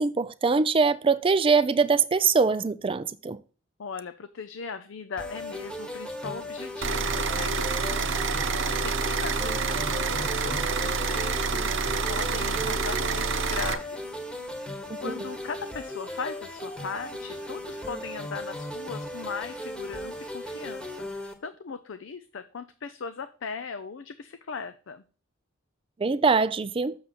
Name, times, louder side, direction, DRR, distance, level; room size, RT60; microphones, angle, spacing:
voice 1, 0.0-3.4 15.0-15.1 26.0-26.9, right 4 dB, 25° right, 0.4 m, -23 dB
voice 2, 3.8-11.8 12.1-14.2 14.6-25.0, left 5 dB, 65° left, 0.5 m, -39 dB
sound 1, 5.2-21.3, left 1 dB, 5° left, 1.2 m, -37 dB
sound 2, 6.8-13.7, right 4 dB, 60° right, 0.8 m, -27 dB
7.0 x 6.5 x 4.1 m
head